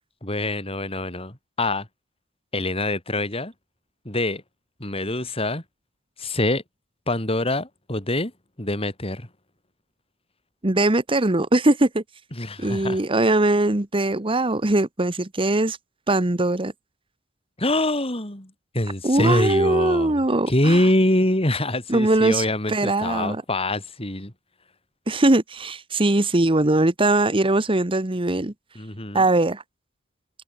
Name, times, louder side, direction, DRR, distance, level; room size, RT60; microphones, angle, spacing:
voice 1, 0.2-1.9 2.5-3.5 4.0-4.4 4.8-5.6 6.2-6.6 7.1-8.3 8.6-9.3 12.4-13.0 17.6-20.2 20.5-24.3 28.8-29.2, left 1 dB, 30° left, 4.2 m, -24 dB
voice 2, 10.6-12.0 12.6-15.8 16.1-16.7 19.0-20.8 21.9-23.4 25.1-28.5 29.1-29.6, right 2 dB, 25° right, 1.2 m, -21 dB
head